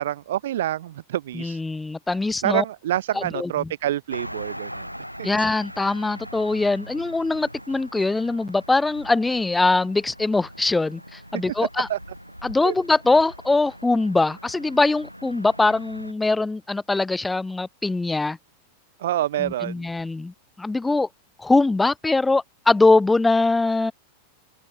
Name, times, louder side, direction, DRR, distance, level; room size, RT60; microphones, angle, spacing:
voice 1, 0.0-1.6 2.4-4.9 5.2-5.3 11.3-11.4 11.9-12.0 12.6-12.7 19.0-19.9, right 12 dB, 60° right, 0.4 m, -27 dB
voice 2, 1.3-2.6 3.1-3.5 5.2-11.9 12.4-18.4 19.4-21.1 21.4-23.9, left 3 dB, 10° left, 0.7 m, -22 dB
sound 1, 4.1-16.1, equal, 90° right, 0.8 m, -41 dB
figure-of-eight pair, 90°, 0 cm